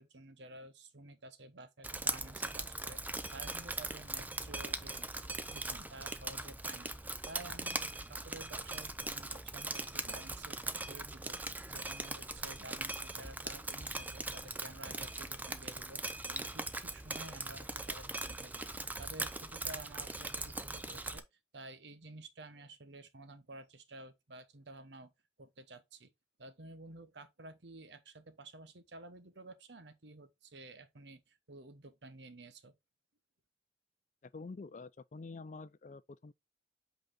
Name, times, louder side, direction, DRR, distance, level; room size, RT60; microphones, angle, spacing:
voice 1, 0.0-5.1 5.5-6.9 7.3-16.0 16.3-21.3 21.5-25.1 25.4-26.1 26.4-32.7, right 2 dB, 80° right, 1.0 m, -52 dB
Drip, 1.8-21.2, right 2 dB, 10° right, 0.5 m, -40 dB
voice 2, 34.2-36.3, left 3 dB, 45° left, 0.4 m, -47 dB
8.0 x 4.0 x 3.7 m
head